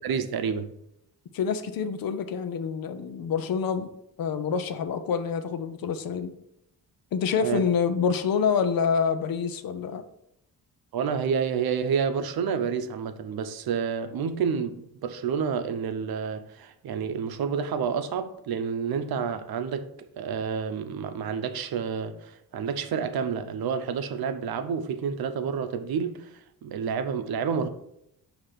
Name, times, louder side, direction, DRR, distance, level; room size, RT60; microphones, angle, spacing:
voice 1, 0.0-0.7 7.4-7.6 10.9-26.3 26.6-27.7, right 6 dB, 75° right, 0.7 m, -29 dB
voice 2, 1.3-3.9 4.2-6.3 7.1-10.0, left 6 dB, 70° left, 0.7 m, -27 dB
6.6 x 2.9 x 5.8 m
wide cardioid pair, 135°, 37 cm